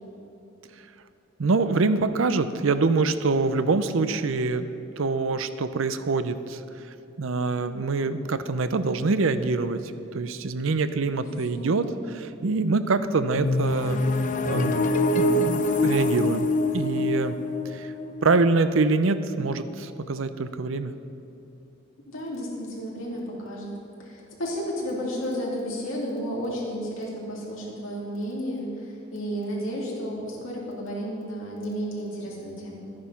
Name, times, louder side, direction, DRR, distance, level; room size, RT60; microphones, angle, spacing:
voice 1, 1.4-4.7 5.0-6.6 7.2-9.8 10.1-14.0 14.4-14.9 15.2-16.5 16.7-17.4 17.7-17.9 18.2-20.9, right 3 dB, 65° right, 12 dB, 0.6 m, -25 dB
voice 2, 11.1-12.0 22.1-23.7 24.0-32.9, equal, 65° left, -4 dB, 3.2 m, -32 dB
sound 1, 13.3-19.1, left 2 dB, 35° left, 0.5 m, -25 dB
12.5 x 9.6 x 5.9 m, 2.9 s
head